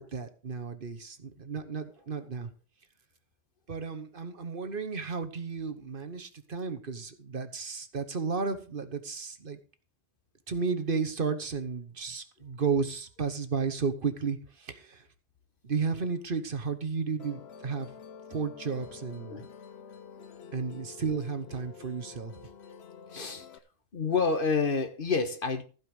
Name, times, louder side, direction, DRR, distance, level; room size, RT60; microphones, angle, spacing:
voice 1, 0.0-2.5 3.7-9.6 10.5-15.0 15.6-17.9 18.3-19.4 20.5-22.3, right 5 dB, 55° right, 1.3 m, -33 dB
Musical instrument, 17.2-23.6, left 6 dB, 75° left, 1.1 m, -48 dB
voice 2, 23.1-23.5 23.9-25.6, left 4 dB, 55° left, 1.4 m, -28 dB
15.0 x 5.3 x 6.3 m
omnidirectional pair, 1.1 m